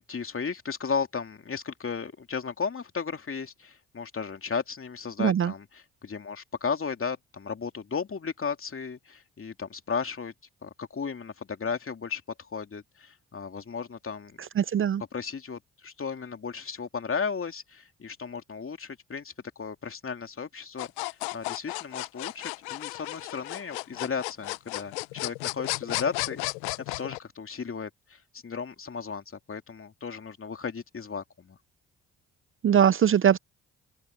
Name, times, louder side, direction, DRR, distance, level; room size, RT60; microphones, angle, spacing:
voice 1, 0.0-10.3 10.6-12.2 12.5-14.4 15.1-26.4 27.0-31.6, left 6 dB, 40° left, 2.8 m, -35 dB
voice 2, 5.2-5.5 14.6-15.0 32.6-33.4, right 9 dB, 40° right, 0.6 m, -21 dB
sound 1, 20.8-27.2, left 23 dB, 85° left, 1.1 m, -34 dB
open air
hypercardioid pair, 45°, 33 cm